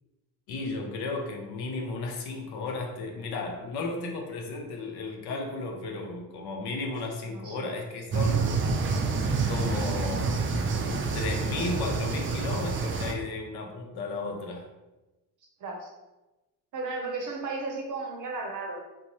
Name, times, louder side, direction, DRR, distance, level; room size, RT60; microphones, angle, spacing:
voice 1, 0.5-8.6 9.5-10.4 11.1-14.7, left 3 dB, 65° left, 2 dB, 0.7 m, -34 dB
voice 2, 7.3-7.8 10.0-10.3 15.6-15.9 16.7-18.8, right 3 dB, 50° right, 1 dB, 0.8 m, -35 dB
sound 1, 8.1-13.1, right 4 dB, 30° right, 0.4 m, -28 dB
2.6 x 2.2 x 2.9 m, 1.1 s
supercardioid pair, 70°, 41 cm